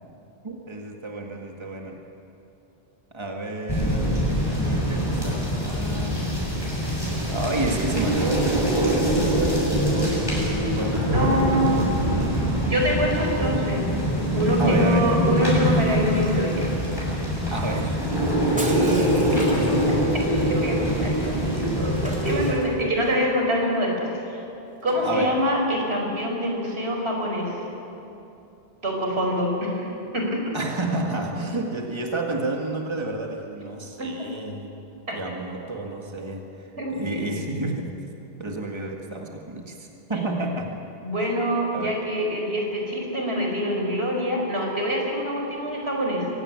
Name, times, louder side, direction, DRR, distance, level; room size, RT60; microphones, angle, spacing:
voice 1, 0.4-2.0 3.1-6.3 7.3-10.4 10.8-11.7 14.6-15.1 17.5-18.0 25.0-25.3 30.5-34.7 35.1-38.0 38.4-40.7 41.7-41.9, right 2 dB, 25° right, 1 dB, 2.0 m, -30 dB
sound 1, 3.7-22.5, equal, 20° left, 6.9 m, -24 dB
Thunder, 10.6-15.6, right 1 dB, 45° left, 5.5 m, -29 dB
voice 2, 11.1-11.9 12.7-13.8 14.3-16.7 18.7-19.8 20.5-24.4 24.8-27.6 28.8-30.5 33.6-33.7 34.0-34.3 35.1-35.2 36.8-37.3 40.1-40.2 41.0-46.3, equal, 90° right, 0 dB, 5.1 m, -25 dB
Shatter, 18.6-20.2 22.0-23.1 24.8-25.1, equal, 5° right, 3.0 m, -38 dB
24.0 x 16.5 x 9.7 m, 2.9 s
omnidirectional pair, 1.0 m